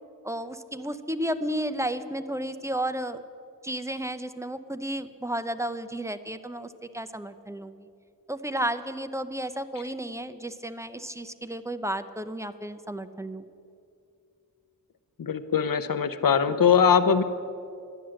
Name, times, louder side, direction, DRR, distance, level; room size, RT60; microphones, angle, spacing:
voice 1, 0.2-3.2 3.6-7.9 8.3-13.5, right 1 dB, 10° right, 11 dB, 0.6 m, -32 dB
voice 2, 15.2-17.2, left 7 dB, 60° left, 13 dB, 0.7 m, -21 dB
12.0 x 10.0 x 7.6 m, 2.6 s
wide cardioid pair, 60°, 38 cm